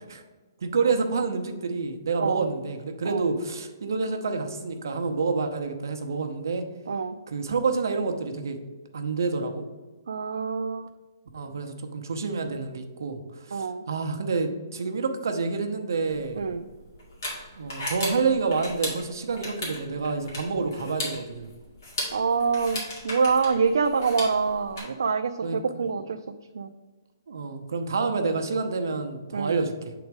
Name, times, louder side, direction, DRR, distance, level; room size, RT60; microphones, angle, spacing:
voice 1, 0.6-6.7 7.3-8.6 8.9-9.6 11.3-16.4 17.6-21.5 25.4-25.8 27.3-29.9, right 4 dB, 60° right, 5 dB, 0.8 m, -28 dB
voice 2, 10.1-10.9 13.5-13.8 16.4-16.6 22.1-26.2 26.5-26.7 29.3-29.6, right 5 dB, 85° right, 6 dB, 0.4 m, -26 dB
sound 1, 16.1-24.8, left 1 dB, 50° left, 2.3 m, -36 dB
7.1 x 3.9 x 4.7 m, 1.2 s
hypercardioid pair, 180°, 2 cm